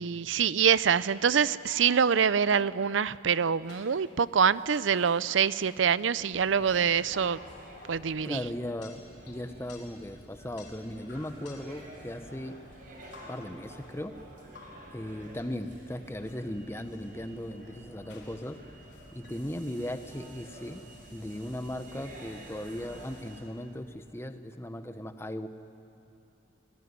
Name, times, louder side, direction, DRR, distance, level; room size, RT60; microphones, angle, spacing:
voice 1, 0.0-7.4 7.9-8.4, right 7 dB, 90° right, 18 dB, 0.5 m, -25 dB
sound 1, 1.3-2.4 3.7-6.2 6.8-8.5 8.8-10.1 10.6-11.8 12.3-14.0 14.3-15.9 16.2-16.3 16.9-19.5, left 3 dB, 65° left, 4.6 m, -54 dB
sound 2, 6.3-23.4, right 1 dB, 45° right, 7.2 m, -50 dB
voice 2, 8.2-12.6 13.3-14.2 14.9-18.6 19.1-20.8 21.1-25.5, left 1 dB, 15° left, 9 dB, 1.0 m, -37 dB
29.0 x 20.0 x 9.7 m, 2.7 s
head